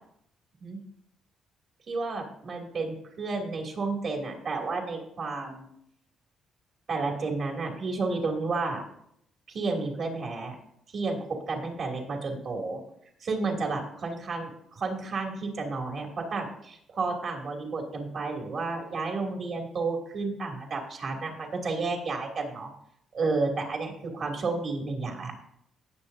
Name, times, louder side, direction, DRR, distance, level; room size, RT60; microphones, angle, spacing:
voice 1, 1.9-5.7 6.9-8.8 9.5-10.5 10.9-11.2 11.5-12.8 13.2-22.7 23.1-25.4, right 3 dB, 55° right, 1 dB, 2.8 m, -31 dB
18.5 x 6.9 x 2.7 m, 0.72 s
cardioid pair, 90°, 0 cm